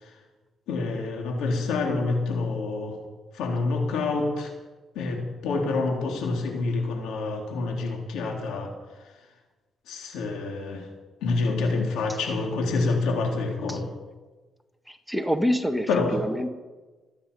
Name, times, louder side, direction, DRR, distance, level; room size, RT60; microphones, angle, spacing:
voice 1, 0.7-3.0 3.3-4.5 5.0-8.7 9.9-10.8 11.2-13.9 15.9-16.2, left 3 dB, 85° left, 1 dB, 3.5 m, -27 dB
voice 2, 14.9-16.5, equal, ahead, 7 dB, 1.4 m, -26 dB
26.0 x 9.9 x 5.5 m, 1.3 s
cardioid pair, 90°, 0 cm